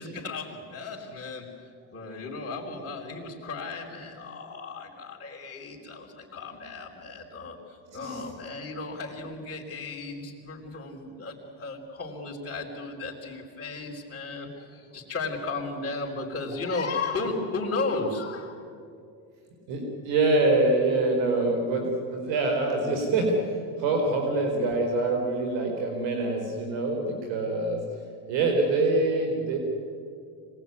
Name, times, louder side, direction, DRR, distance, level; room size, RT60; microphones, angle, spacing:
voice 1, 0.0-1.5 1.9-18.5, left 3 dB, 25° left, -7 dB, 4.5 m, -34 dB
voice 2, 7.9-8.2 19.7-27.8 28.3-29.6, right 2 dB, 75° right, 3 dB, 4.5 m, -25 dB
26.0 x 20.0 x 9.6 m, 2.4 s
cardioid pair, 115°, 44 cm